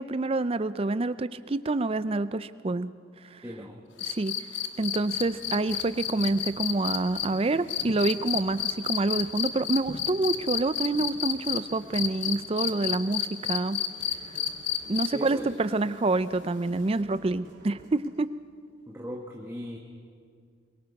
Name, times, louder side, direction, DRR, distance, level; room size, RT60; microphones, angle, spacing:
voice 1, 0.0-2.9 4.1-4.3 4.8-13.8 14.9-18.3, right 2 dB, 30° right, 15 dB, 0.5 m, -27 dB
voice 2, 3.4-3.8 15.1-15.6 18.9-19.8, equal, 15° right, -1 dB, 1.3 m, -38 dB
sound 1, 4.0-11.6 11.9-15.3 16.9-17.0, left 10 dB, 75° left, 1.2 m, -30 dB
sound 2, 5.1-18.1, right 1 dB, 45° right, 3.5 m, -53 dB
23.0 x 22.5 x 5.3 m, 2.2 s
head